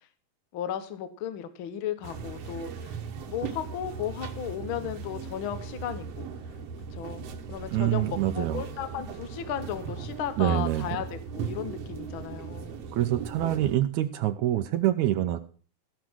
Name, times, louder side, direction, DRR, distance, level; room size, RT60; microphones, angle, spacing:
voice 1, 0.5-3.0 3.3-6.3 6.9-12.8, left 9 dB, 60° left, 11 dB, 1.4 m, -35 dB
sound 1, 2.0-13.8, right 6 dB, 60° right, 2.0 m, -38 dB
voice 2, 7.7-8.6 10.4-10.9 12.9-15.4, right 13 dB, 75° right, 10 dB, 2.0 m, -26 dB
16.0 x 5.8 x 6.2 m, 0.42 s
omnidirectional pair, 3.6 m